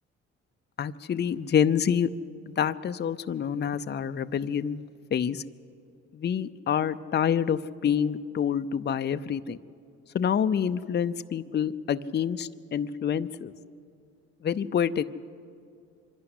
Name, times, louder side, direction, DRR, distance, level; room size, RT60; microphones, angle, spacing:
voice 1, 0.8-2.1 2.5-4.8 5.1-5.4 6.1-9.6 10.1-13.5 14.4-15.0, left 8 dB, 35° left, 11 dB, 0.6 m, -27 dB
25.0 x 11.5 x 9.7 m, 2.5 s
cardioid pair, 90°, 30 cm